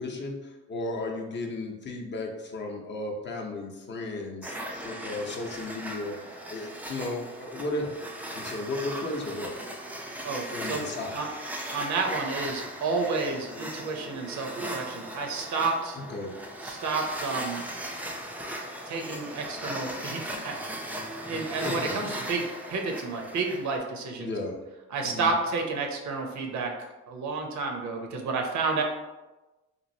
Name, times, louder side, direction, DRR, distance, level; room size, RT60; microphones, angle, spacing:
voice 1, 0.0-7.9 8.3-9.6 10.5-11.2 16.0-16.3 21.6-22.1 24.2-24.5 25.0-25.3, left 2 dB, 40° left, 0 dB, 0.6 m, -34 dB
sound 1, 4.4-23.8, right 1 dB, 5° right, 0.3 m, -38 dB
voice 2, 10.2-11.3 11.7-16.0 16.6-17.7 18.9-20.6 21.3-24.3 24.9-26.7 27.1-28.8, right 4 dB, 70° right, 2 dB, 0.6 m, -30 dB
3.0 x 2.4 x 2.6 m, 1.1 s
cardioid pair, 90°, 30 cm